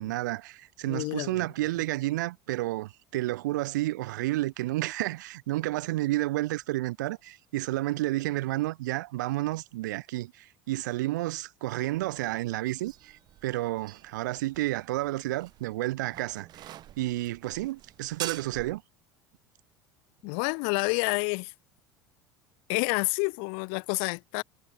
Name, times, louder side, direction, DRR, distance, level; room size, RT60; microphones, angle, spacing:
voice 1, 0.0-18.8, right 17 dB, 60° right, 0.6 m, -31 dB
voice 2, 0.9-1.4 20.2-21.5 22.7-24.4, left 40 dB or more, 55° left, 0.9 m, -29 dB
sound 1, 11.8-18.8, right 13 dB, 40° right, 0.9 m, -46 dB
figure-of-eight pair, 70°, 11 cm